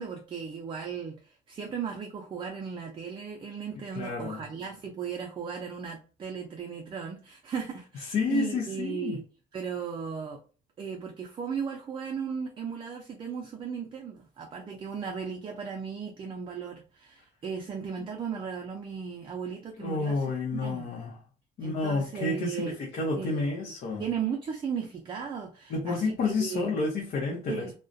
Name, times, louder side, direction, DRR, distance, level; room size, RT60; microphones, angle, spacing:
voice 1, 0.0-9.2 9.5-10.4 10.8-20.3 20.5-20.9 21.6-22.7 23.2-23.7 24.0-26.7 27.5-27.7, right 6 dB, 30° right, 0.4 m, -36 dB
voice 2, 3.9-4.4 8.1-9.2 19.8-21.2 21.6-24.0 25.7-27.8, left 3 dB, 60° left, 0.8 m, -30 dB
2.3 x 2.1 x 2.5 m
cardioid pair, 110°, 17 cm